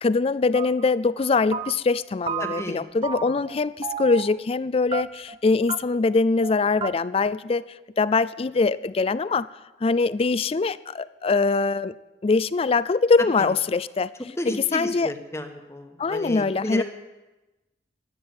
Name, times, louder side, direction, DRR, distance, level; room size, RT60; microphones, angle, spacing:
voice 1, 0.0-7.6 8.0-9.5 9.8-11.9 12.2-14.1 14.5-15.1 16.0-16.8, left 4 dB, 35° left, 17 dB, 0.4 m, -23 dB
sound 1, 0.5-0.9 1.2-2.0 2.3-2.8 3.0-3.6 3.8-4.4 4.9-5.4 5.7-5.8 6.1-6.2 6.4-6.5 6.8-6.9, right 7 dB, 30° right, 0.4 m, -32 dB
voice 2, 2.4-2.8 13.2-13.5 14.4-16.8, left 1 dB, 15° left, 5 dB, 1.2 m, -32 dB
11.5 x 10.5 x 7.8 m, 1.1 s
head